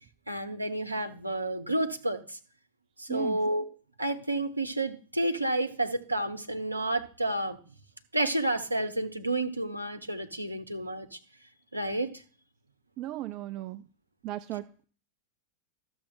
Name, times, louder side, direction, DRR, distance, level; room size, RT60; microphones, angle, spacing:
voice 1, 0.3-2.4 3.0-3.7 4.0-7.6 8.1-11.2 11.7-12.2, right 1 dB, 85° right, 0.9 m, -30 dB
voice 2, 13.0-13.8 14.2-14.6, right 15 dB, 40° right, 0.4 m, -35 dB
13.0 x 7.0 x 3.8 m
figure-of-eight pair, 90°, 0 cm